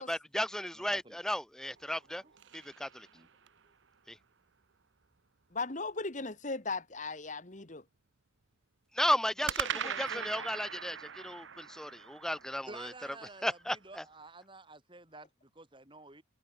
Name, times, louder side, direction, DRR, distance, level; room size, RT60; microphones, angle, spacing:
voice 1, 0.0-2.2 2.5-3.1 4.1-4.2 8.9-12.9 13.4-14.0, left 1 dB, 5° left, 0.7 m, -34 dB
voice 2, 0.7-1.2 2.2-2.3 3.1-3.3 12.7-16.2, right 2 dB, 25° right, 5.6 m, -51 dB
sound 1, 1.8-3.7 9.5-13.7, right 8 dB, 70° right, 0.8 m, -41 dB
voice 3, 5.5-7.8 9.7-10.5, left 3 dB, 40° left, 1.6 m, -38 dB
head